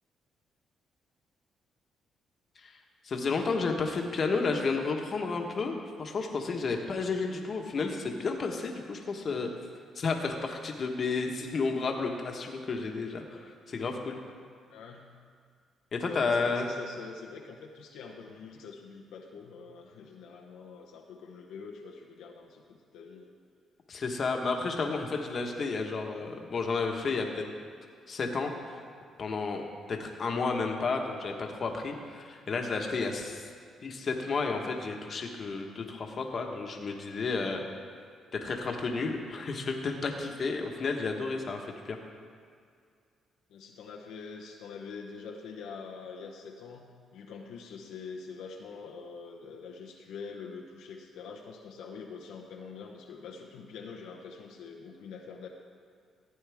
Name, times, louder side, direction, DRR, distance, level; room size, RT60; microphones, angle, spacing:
voice 1, 3.0-9.5 9.9-14.2 15.9-16.7 23.9-27.5 28.1-28.8 29.2-33.4 33.8-37.6 38.3-42.0, left 4 dB, 45° left, 2 dB, 1.3 m, -32 dB
voice 2, 14.7-15.1 16.1-23.3 43.5-55.5, left 5 dB, 90° left, 0 dB, 1.0 m, -45 dB
15.0 x 8.9 x 3.5 m, 2.1 s
cardioid pair, 90°, 0 cm